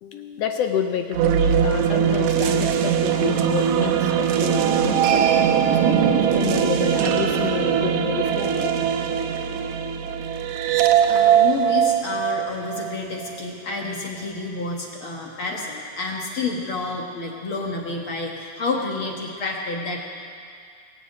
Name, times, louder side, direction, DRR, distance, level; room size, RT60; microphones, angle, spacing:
voice 1, 0.0-8.7, left 8 dB, 75° left, 6 dB, 1.5 m, -29 dB
sound 1, 1.1-13.3, right 8 dB, 80° right, 2.0 m, -20 dB
voice 2, 11.1-20.0, left 3 dB, 50° left, -1 dB, 1.8 m, -29 dB
21.5 x 7.2 x 8.4 m, 2.3 s
omnidirectional pair, 3.5 m